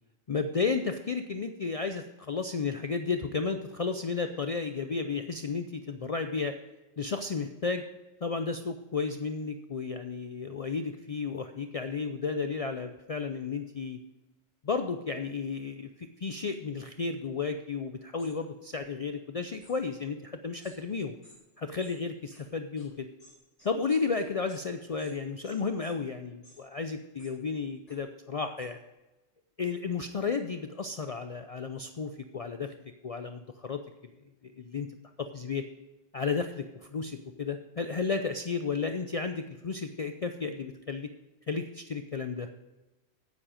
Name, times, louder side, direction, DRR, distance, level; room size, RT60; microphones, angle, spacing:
voice 1, 0.3-6.5 7.0-7.8 8.2-14.0 14.6-21.2 21.6-23.1 23.6-28.8 29.6-32.7 33.0-34.1 34.4-34.9 35.2-35.6 36.1-36.7 36.9-41.1 41.5-42.5, left 4 dB, 70° left, 7 dB, 0.3 m, -33 dB
sound 1, 18.2-18.3 19.6-19.8 20.6-20.8 21.2-21.4 21.8-22.0 22.3-22.4 22.8-22.9 23.2-24.6 25.0-25.1 25.4-25.9 26.4-26.6 27.2-27.3 27.9-28.0 28.6-28.7, equal, 25° left, 4.2 m, -56 dB
9.6 x 8.8 x 5.1 m, 1.1 s
omnidirectional pair, 1.4 m